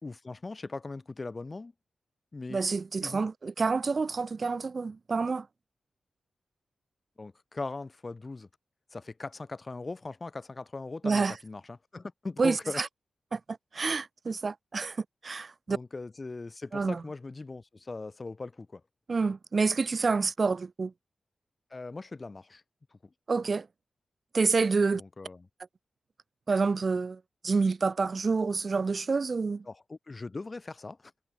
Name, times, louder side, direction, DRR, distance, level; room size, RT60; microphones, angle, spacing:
voice 1, 0.0-1.7 2.3-2.6 3.0-3.2 7.2-8.5 8.9-12.8 15.7-18.8 21.7-22.6 24.9-25.5 29.7-31.1, left 3 dB, 35° left, 7.9 m, -40 dB
voice 2, 2.5-5.5 11.0-11.3 12.4-12.9 13.3-15.0 15.2-15.8 16.7-17.0 19.1-20.9 23.3-23.7 24.3-25.0 26.5-27.2 27.4-29.6, right 4 dB, 45° right, 0.8 m, -28 dB
cardioid pair, 85°, 0 cm